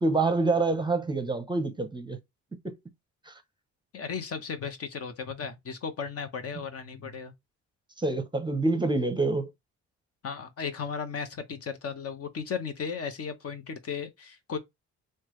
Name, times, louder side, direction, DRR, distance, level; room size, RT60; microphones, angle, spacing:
voice 1, 0.0-2.2 2.6-2.7 3.3-3.4 8.0-9.5, right 3 dB, 15° right, 0.6 m, -26 dB
voice 2, 3.9-7.3 10.2-14.6, left 6 dB, 50° left, 0.8 m, -35 dB
3.3 x 2.2 x 3.0 m
cardioid pair, 90°, 30 cm